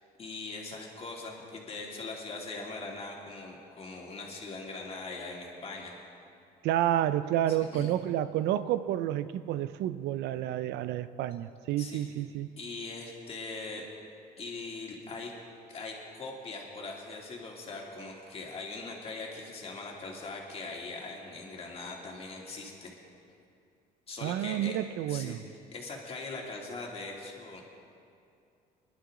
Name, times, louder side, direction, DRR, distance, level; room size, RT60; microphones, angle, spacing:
voice 1, 0.2-5.9 7.5-7.9 11.8-12.1 12.6-13.8 14.4-15.3 15.7-22.9 24.1-24.8 25.1-25.4 25.7-27.6, left 3 dB, 35° left, -2 dB, 2.8 m, -41 dB
voice 2, 6.6-12.5 24.2-25.4, right 12 dB, 80° right, 14 dB, 0.5 m, -30 dB
22.0 x 11.5 x 3.8 m, 2.5 s
cardioid pair, 110°, 17 cm